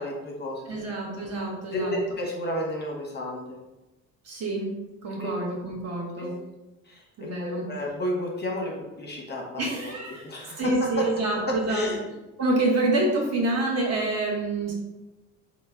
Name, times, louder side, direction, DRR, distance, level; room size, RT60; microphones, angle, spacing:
voice 1, 0.0-0.8 1.7-3.6 5.2-5.4 6.2-6.4 6.9-10.0 10.2-11.1 11.5-12.0, left 1 dB, 25° left, -2 dB, 0.8 m, -31 dB
voice 2, 0.7-2.0 4.2-4.7 5.0-6.3 7.2-7.6 9.6-10.2 10.6-11.9 12.4-14.7, right 2 dB, 40° right, -2 dB, 0.9 m, -27 dB
3.2 x 2.1 x 3.3 m, 1.0 s
figure-of-eight pair, 50°, 41 cm